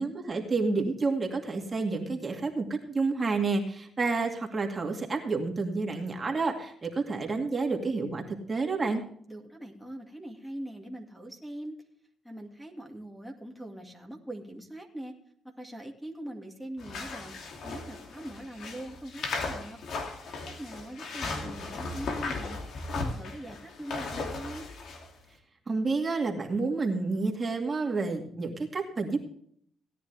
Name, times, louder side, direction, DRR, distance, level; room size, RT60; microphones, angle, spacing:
voice 1, 0.0-9.0 25.7-29.2, right 3 dB, 30° right, 2 dB, 2.3 m, -29 dB
voice 2, 9.3-11.8 12.2-15.1 15.4-19.8 20.4-22.6 22.9-24.7, right 1 dB, ahead, 2 dB, 2.2 m, -42 dB
sound 1, 16.8-25.1, left 3 dB, 70° left, 2.6 m, -36 dB
17.0 x 10.0 x 3.4 m, 0.63 s
cardioid pair, 90°, 0 cm